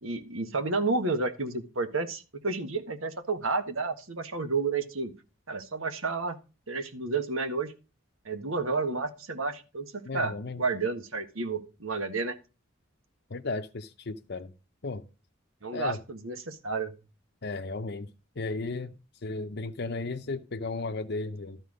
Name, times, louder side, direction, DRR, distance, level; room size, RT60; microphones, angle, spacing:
voice 1, 0.0-5.1 5.5-6.4 6.7-7.7 8.2-9.9 10.1-12.3 15.6-16.9, right 3 dB, 80° right, 1.6 m, -31 dB
voice 2, 10.0-10.6 13.3-14.5 14.8-15.0 15.7-16.0 17.4-18.1 18.4-18.9 19.2-21.6, left 3 dB, 55° left, 0.7 m, -34 dB
13.0 x 4.5 x 6.4 m
head